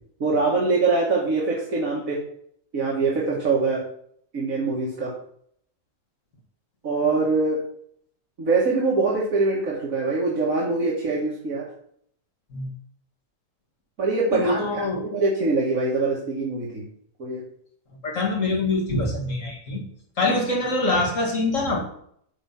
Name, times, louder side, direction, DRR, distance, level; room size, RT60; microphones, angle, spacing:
voice 1, 0.2-2.2 2.7-3.9 4.3-5.1 6.8-7.6 8.4-11.7 14.0-14.8 15.1-16.8 17.2-17.4 20.2-20.4, right 3 dB, 85° right, 2.2 m, -23 dB
voice 2, 14.3-15.1 18.0-19.8 20.2-21.8, left 2 dB, 70° left, 2.7 m, -24 dB
9.2 x 5.4 x 5.9 m
omnidirectional pair, 1.4 m